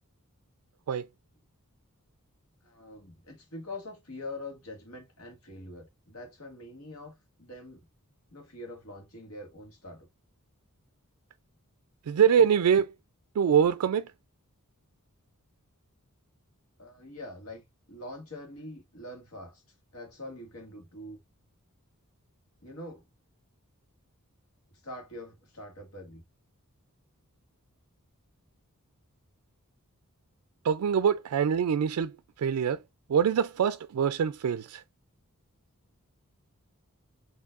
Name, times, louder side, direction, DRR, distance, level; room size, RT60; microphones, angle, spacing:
voice 1, 2.6-7.8 8.3-10.1 16.8-19.6 19.9-21.2 22.6-23.0 24.8-26.2, left 1 dB, 75° left, 1.8 m, -44 dB
voice 2, 12.1-12.9 13.4-14.1 30.6-32.8 33.1-34.8, right 7 dB, 80° right, 0.3 m, -24 dB
4.5 x 3.2 x 2.4 m
head